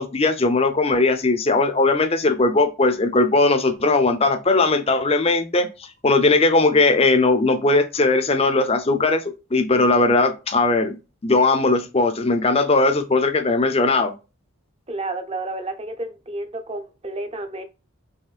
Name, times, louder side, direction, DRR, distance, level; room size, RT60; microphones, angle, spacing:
voice 1, 0.0-5.7 6.0-9.2 9.5-14.1, left 3 dB, 30° left, 0.6 m, -19 dB
voice 2, 14.9-17.6, right 2 dB, 30° right, 0.7 m, -31 dB
5.6 x 3.1 x 2.4 m
head